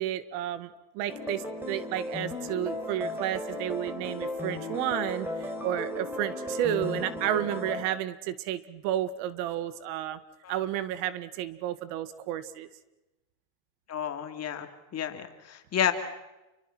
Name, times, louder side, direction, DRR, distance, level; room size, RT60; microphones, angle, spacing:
voice 1, 0.0-10.2 10.5-12.7, right 12 dB, 80° right, 14 dB, 1.8 m, -32 dB
sound 1, 1.1-7.8, left 1 dB, 5° right, 4.5 m, -35 dB
voice 2, 13.9-15.9, left 9 dB, 35° left, 7 dB, 2.7 m, -31 dB
29.0 x 24.0 x 6.1 m, 1.0 s
cardioid pair, 140°, 44 cm